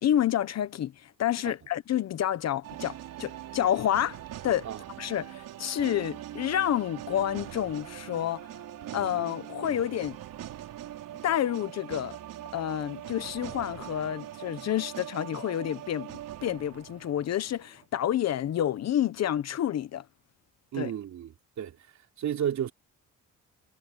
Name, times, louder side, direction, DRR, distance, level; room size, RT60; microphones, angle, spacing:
voice 1, 0.0-4.2 4.4-4.7 5.0-8.4 8.9-10.2 11.2-12.2 12.5-20.0 20.8-20.9, left 11 dB, 50° left, 1.0 m, -29 dB
sound 1, 2.6-17.9, right 12 dB, 75° right, 4.6 m, -42 dB
voice 2, 20.7-21.7 22.2-22.7, right 9 dB, 60° right, 3.4 m, -32 dB
cardioid pair, 165°, 33 cm